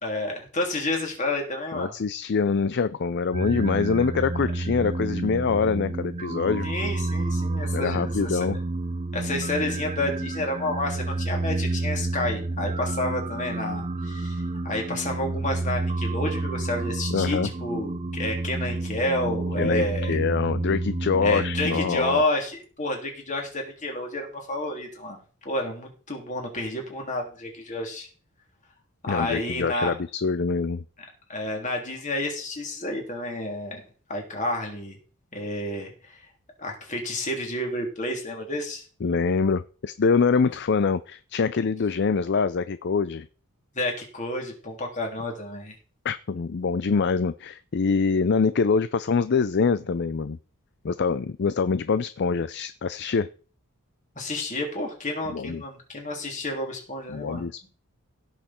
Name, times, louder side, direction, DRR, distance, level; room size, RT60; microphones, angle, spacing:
voice 1, 0.0-1.9 6.6-8.4 9.1-20.2 21.2-25.2 25.4-28.1 29.0-29.9 31.3-33.8 34.1-35.0 35.3-36.3 36.6-38.8 43.7-45.7 54.1-57.7, left 1 dB, 35° left, 1 dB, 3.3 m, -30 dB
voice 2, 1.7-6.7 7.7-8.6 17.1-17.5 19.6-22.2 29.1-30.8 39.0-43.3 46.0-50.4 50.8-53.3 55.3-55.6 57.1-57.7, left 5 dB, 50° left, 14 dB, 0.4 m, -25 dB
sound 1, 3.3-22.0, right 2 dB, 25° right, 0.5 m, -30 dB
16.5 x 6.6 x 4.4 m, 0.38 s
head